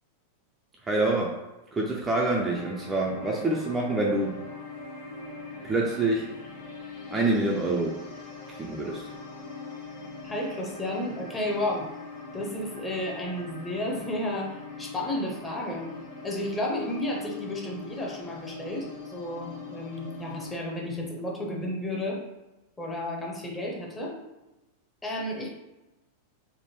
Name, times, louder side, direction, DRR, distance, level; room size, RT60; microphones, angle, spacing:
voice 1, 0.8-4.4 5.6-6.4 7.1-8.1 8.5-9.1, right 2 dB, 15° right, -2 dB, 0.4 m, -27 dB
sound 1, 2.4-20.5, left 3 dB, 40° left, 1.2 m, -42 dB
voice 2, 10.2-11.9 12.3-15.9 16.2-22.2 22.8-24.2 25.0-25.5, left 1 dB, 15° left, -1 dB, 0.7 m, -32 dB
3.4 x 2.1 x 3.0 m, 1.0 s
figure-of-eight pair, 90°, 0 cm